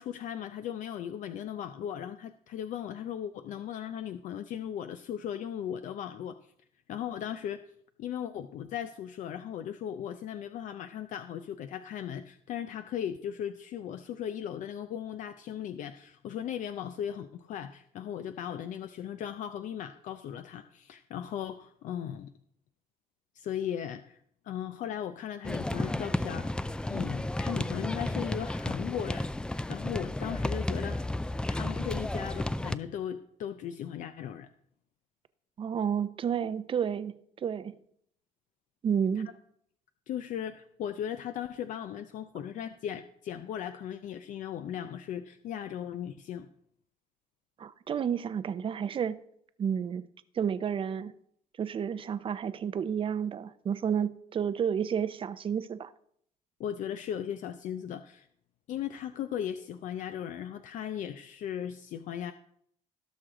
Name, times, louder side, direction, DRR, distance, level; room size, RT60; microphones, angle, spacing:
voice 1, 0.0-6.4 6.9-7.6 8.0-22.3 23.3-24.2 24.4-26.5 26.9-29.3 29.7-31.0 31.5-34.5 39.2-39.3 40.1-46.5 56.6-58.3 58.7-62.3, left 9 dB, 65° left, 0.5 m, -37 dB
sound 1, 25.4-32.8, left 1 dB, 5° left, 0.3 m, -32 dB
voice 2, 35.6-37.8 38.8-39.3 47.6-49.2 49.6-50.1 50.3-51.1 51.6-55.9, right 8 dB, 40° right, 0.6 m, -31 dB
17.0 x 6.2 x 3.8 m
cardioid pair, 110°, 14 cm